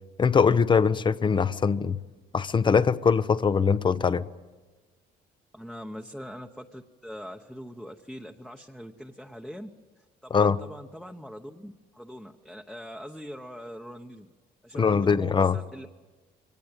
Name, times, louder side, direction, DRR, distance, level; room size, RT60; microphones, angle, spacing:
voice 1, 0.2-2.0 2.3-4.3 10.3-10.6 14.8-15.6, left 6 dB, 30° left, 0.7 m, -22 dB
voice 2, 5.5-9.7 10.2-14.3 14.6-15.9, equal, ahead, 1.0 m, -42 dB
23.5 x 18.0 x 8.9 m
cardioid pair, 110°, 17 cm